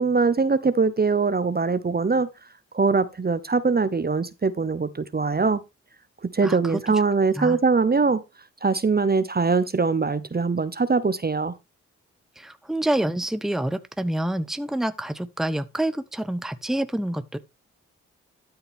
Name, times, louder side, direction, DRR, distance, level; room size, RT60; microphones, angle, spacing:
voice 1, 0.0-2.3 2.7-5.6 6.3-8.2 8.6-11.5, right 4 dB, 30° right, 0.9 m, -22 dB
voice 2, 6.4-6.8 7.3-7.6 12.4-17.4, right 1 dB, ahead, 0.9 m, -27 dB
12.5 x 5.7 x 3.6 m
supercardioid pair, 40°, 33 cm